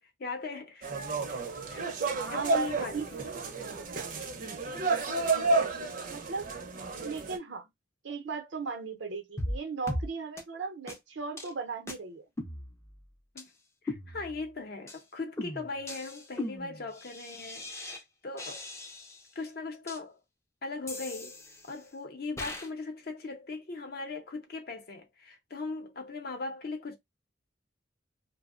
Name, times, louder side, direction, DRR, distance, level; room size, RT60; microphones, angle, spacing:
voice 1, 0.0-1.9 2.3-3.0 13.3-13.5 13.8-18.7 19.3-20.2 20.6-27.0, left 3 dB, 55° left, 0.6 m, -39 dB
sound 1, 0.8-7.4, right 3 dB, 45° right, 0.5 m, -31 dB
voice 2, 2.1-3.3 6.1-6.5 7.0-7.7 8.0-12.3, right 4 dB, 90° right, 0.6 m, -37 dB
sound 2, 9.4-9.6 9.9-10.1 10.4-10.5 10.9-11.0 11.4-11.5 11.9-12.0 12.4-13.0 13.4-13.5 13.9-14.5 14.9-15.0 15.4-18.0 18.4-19.3 19.9-20.0 20.9-21.8 22.4-22.7, left 1 dB, 15° left, 0.4 m, -38 dB
2.6 x 2.0 x 2.4 m
head